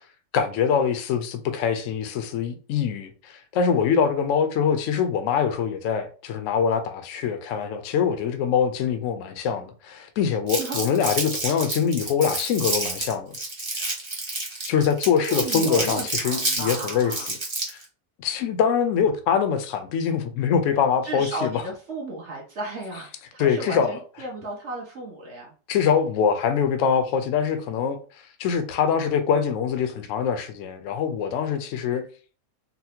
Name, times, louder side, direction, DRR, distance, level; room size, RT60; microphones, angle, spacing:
voice 1, 0.3-13.4 13.8-13.9 14.7-17.4 17.7-17.8 18.2-21.6 23.4-24.0 25.7-28.0 28.4-32.0, left 7 dB, 70° left, 0.8 m, -24 dB
Crumpling crinkling, 10.5-17.8, right 2 dB, 25° right, 0.7 m, -29 dB
voice 2, 15.3-17.3 21.0-25.5, right 2 dB, 55° right, 0.9 m, -34 dB
4.0 x 2.1 x 2.7 m
omnidirectional pair, 1.7 m